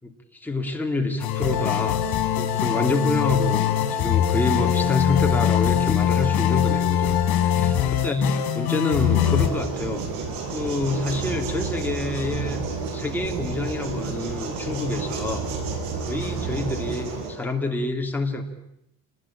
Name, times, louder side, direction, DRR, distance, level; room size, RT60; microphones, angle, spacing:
voice 1, 0.0-2.0 2.4-12.6 12.9-15.6 16.0-18.4, left 2 dB, 5° left, 1 dB, 2.9 m, -27 dB
sound 1, 1.2-9.5, left 10 dB, 75° left, 4.5 m, -22 dB
sound 2, 8.9-17.3, right 4 dB, 85° right, 7.8 m, -30 dB
28.0 x 20.5 x 8.8 m, 0.81 s
cardioid pair, 155°, 38 cm